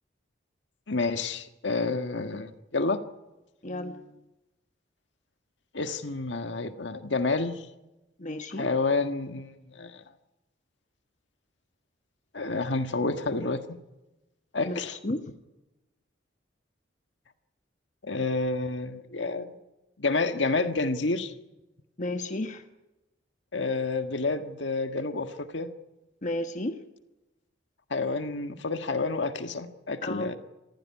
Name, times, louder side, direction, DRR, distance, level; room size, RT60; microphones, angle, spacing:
voice 1, 0.9-3.0 5.7-7.6 8.6-10.0 12.3-13.6 14.5-15.0 18.0-19.6 20.0-21.3 23.5-25.7 27.9-30.4, left 3 dB, 75° left, 7 dB, 1.7 m, -29 dB
voice 2, 3.6-4.1 8.2-8.7 14.6-15.2 22.0-22.6 26.2-26.8 30.0-30.3, left 1 dB, 40° left, 6 dB, 1.2 m, -33 dB
27.5 x 15.5 x 9.8 m, 1.0 s
head